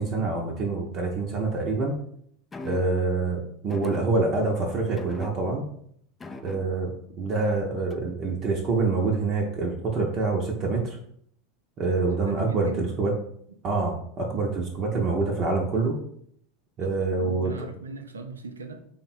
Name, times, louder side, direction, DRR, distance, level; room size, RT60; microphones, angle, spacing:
voice 1, 0.0-1.9 2.6-5.6 6.4-6.9 7.2-11.0 11.8-13.1 13.6-16.0 16.8-17.5, right 3 dB, 40° right, 0.6 m, -26 dB
sound 1, 2.5-3.1 3.7-4.5 5.0-5.8 6.2-7.0 7.9-8.2, left 2 dB, 20° left, 0.3 m, -41 dB
voice 2, 11.9-13.0 16.8-18.9, right 3 dB, 80° right, 0.4 m, -39 dB
3.4 x 2.1 x 4.2 m
figure-of-eight pair, 85°, 0 cm